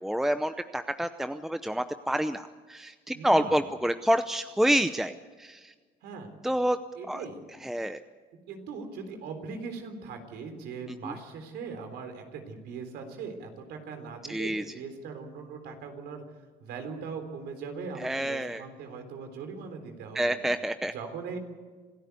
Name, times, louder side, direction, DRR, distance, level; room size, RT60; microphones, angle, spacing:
voice 1, 0.0-5.7 6.4-6.8 7.1-7.2 7.6-8.0 11.0-11.1 14.3-14.6 18.0-18.6 20.1-20.9, equal, ahead, 10 dB, 0.7 m, -28 dB
voice 2, 3.1-3.6 6.0-6.3 6.9-7.4 8.5-16.2 16.6-20.4 20.9-21.4, right 5 dB, 80° right, 6 dB, 3.7 m, -40 dB
26.0 x 14.0 x 8.3 m, 1.4 s
cardioid pair, 110°, 17 cm